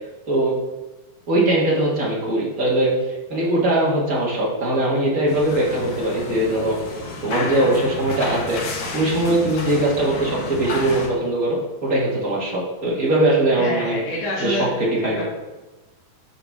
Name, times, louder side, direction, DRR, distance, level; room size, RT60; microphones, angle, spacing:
voice 1, 1.3-2.9 3.3-6.8 7.2-8.6 8.9-14.0 14.4-15.2, right 1 dB, 50° right, -5 dB, 1.0 m, -21 dB
sound 1, 5.3-11.1, left 3 dB, 60° left, 1.7 m, -31 dB
voice 2, 13.6-14.7 15.0-15.2, left 1 dB, 75° left, -8 dB, 3.7 m, -27 dB
10.5 x 6.0 x 3.6 m, 1.1 s
omnidirectional pair, 4.5 m